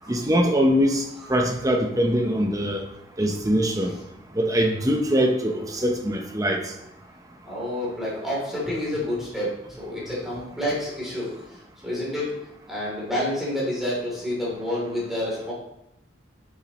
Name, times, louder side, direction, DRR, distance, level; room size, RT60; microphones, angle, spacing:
voice 1, 0.1-2.9 3.2-3.9 4.3-6.7, equal, 20° right, 2 dB, 0.9 m, -22 dB
voice 2, 7.4-9.5 9.8-11.3 11.8-12.3 12.7-15.5, left 1 dB, ahead, -7 dB, 3.2 m, -28 dB
9.4 x 7.5 x 3.1 m, 0.83 s
head